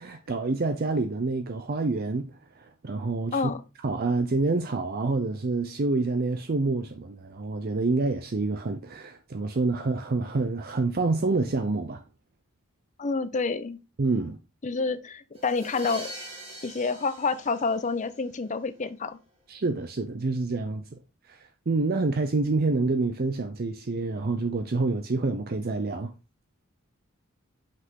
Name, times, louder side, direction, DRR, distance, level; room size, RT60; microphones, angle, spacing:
voice 1, 0.0-2.3 2.6-3.5 3.8-12.0 14.0-14.4 19.5-21.0 21.3-26.1, right 3 dB, 45° right, 0.6 m, -27 dB
voice 2, 13.0-13.8 14.6-16.1 16.6-19.2, left 4 dB, 35° left, 0.6 m, -28 dB
sound 1, 15.4-18.3, right 1 dB, 25° right, 1.9 m, -42 dB
6.0 x 5.5 x 3.7 m
head